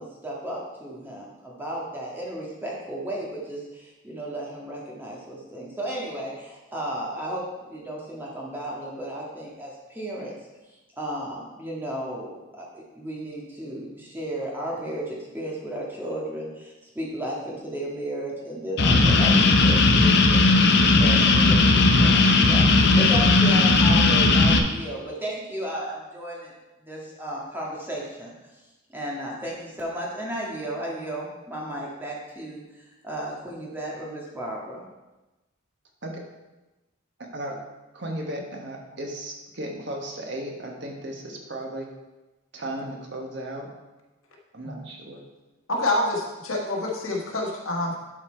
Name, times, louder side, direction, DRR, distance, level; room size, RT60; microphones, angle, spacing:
voice 1, 0.0-10.3 11.0-26.5 26.8-28.3 28.9-34.8, right 1 dB, 10° right, -4 dB, 1.7 m, -34 dB
sound 1, 18.8-24.6, left 3 dB, 55° left, 0.7 m, -17 dB
voice 2, 37.2-37.6 37.9-41.9 42.5-43.7 44.5-45.2, right 1 dB, 55° right, 1 dB, 1.4 m, -35 dB
voice 3, 45.7-48.0, left 2 dB, 85° left, 0 dB, 1.5 m, -27 dB
11.0 x 4.4 x 4.4 m, 1.1 s
head